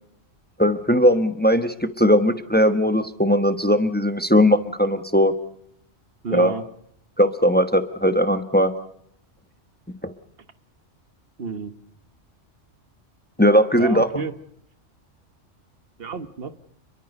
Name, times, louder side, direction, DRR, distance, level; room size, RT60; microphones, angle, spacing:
voice 1, 0.6-5.3 6.3-6.5 7.2-8.7 13.4-14.1, equal, 10° left, 9 dB, 1.0 m, -18 dB
voice 2, 6.2-6.6 11.4-11.7 13.7-14.3 16.0-16.6, right 5 dB, 55° right, 11 dB, 1.5 m, -30 dB
28.5 x 22.5 x 5.3 m, 0.70 s
omnidirectional pair, 1.3 m